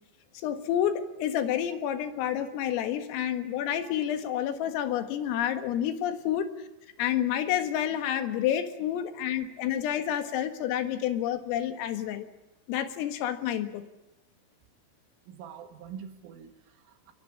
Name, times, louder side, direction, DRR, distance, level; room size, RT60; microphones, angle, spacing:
voice 1, 0.3-6.5 7.0-12.3 12.7-13.8, left 10 dB, 80° left, 8 dB, 4.3 m, -29 dB
voice 2, 15.3-17.1, right 7 dB, 75° right, 6 dB, 4.3 m, -45 dB
24.5 x 22.5 x 8.6 m, 0.92 s
omnidirectional pair, 5.9 m